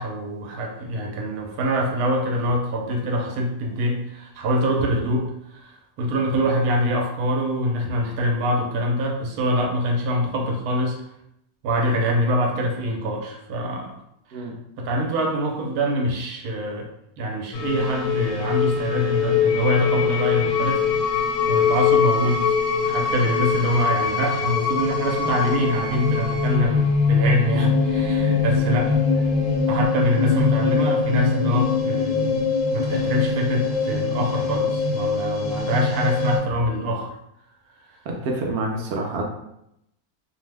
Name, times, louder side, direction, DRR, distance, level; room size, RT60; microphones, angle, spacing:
voice 1, 0.0-11.0 11.6-13.9 14.3-14.5 14.8-16.9 17.2-20.8 21.5-22.6 22.8-29.2 29.7-37.1, equal, 85° right, 1 dB, 1.1 m, -24 dB
sound 1, 17.5-36.4, left 5 dB, 85° left, 1.1 m, -22 dB
voice 2, 38.1-39.2, right 2 dB, 65° right, 0 dB, 0.6 m, -27 dB
2.7 x 2.0 x 3.2 m, 0.80 s
omnidirectional pair, 1.6 m